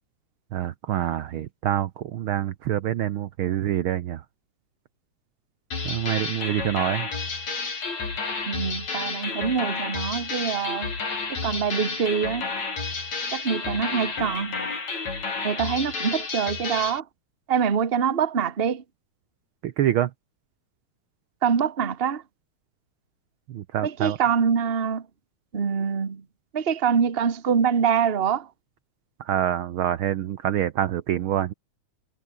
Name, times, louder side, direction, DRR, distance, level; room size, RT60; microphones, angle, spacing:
voice 1, 0.5-4.2 5.8-7.1 19.6-20.1 23.5-24.2 29.2-31.5, right 11 dB, 75° right, 1.2 m, -26 dB
sound 1, 5.7-17.0, left 4 dB, 65° left, 6.7 m, -31 dB
voice 2, 8.4-10.9 11.3-12.5 13.3-14.6 15.4-17.0 17.5-18.8 21.4-22.2 23.8-25.0 25.5-26.2 26.5-28.5, right 7 dB, 35° right, 1.0 m, -25 dB
omnidirectional pair, 3.4 m